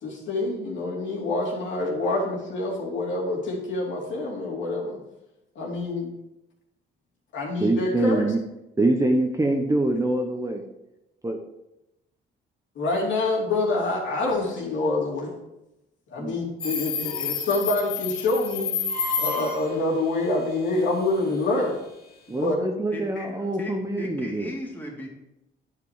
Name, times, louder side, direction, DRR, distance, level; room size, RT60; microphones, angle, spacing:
voice 1, 0.0-5.0 5.5-6.1 7.3-8.3 12.7-15.3 16.1-18.7 19.2-21.8 22.4-22.6 23.2-23.3, left 2 dB, 70° left, -3 dB, 3.0 m, -26 dB
voice 2, 7.6-8.4 8.8-10.6 11.2-11.4 16.2-16.4 22.3-24.5, right 2 dB, 15° right, 3 dB, 1.0 m, -24 dB
Subway metro underground, 16.6-19.7, left 5 dB, 55° left, 2.4 m, -29 dB
voice 3, 23.6-25.1, equal, 10° left, -2 dB, 2.8 m, -36 dB
10.0 x 5.0 x 5.0 m, 0.90 s
cardioid pair, 90°, 20 cm